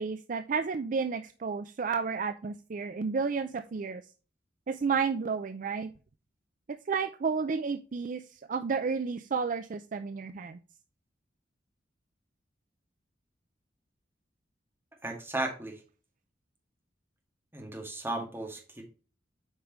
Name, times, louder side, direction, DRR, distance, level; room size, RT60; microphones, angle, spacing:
voice 1, 0.0-4.0 4.7-5.9 6.9-8.2 8.5-10.6, right 5 dB, 45° right, 10 dB, 0.4 m, -31 dB
voice 2, 15.0-15.8 17.5-18.8, right 2 dB, 15° right, 0 dB, 2.0 m, -35 dB
8.1 x 5.1 x 3.0 m, 0.35 s
head